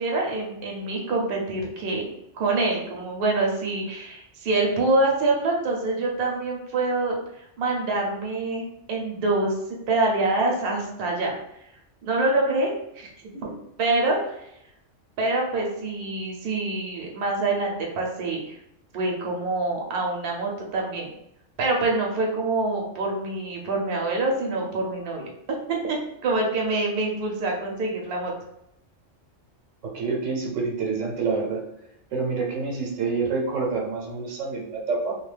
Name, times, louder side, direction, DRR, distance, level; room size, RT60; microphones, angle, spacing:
voice 1, 0.0-2.1 2.3-7.2 7.6-9.5 9.9-11.3 12.0-14.5 15.2-18.6 18.9-21.1 21.6-25.3 25.7-28.3, right 2 dB, 60° right, -1 dB, 0.8 m, -26 dB
voice 2, 29.8-31.6 32.1-35.1, right 4 dB, 85° right, -1 dB, 1.0 m, -27 dB
2.3 x 2.3 x 3.2 m, 0.78 s
omnidirectional pair, 1.3 m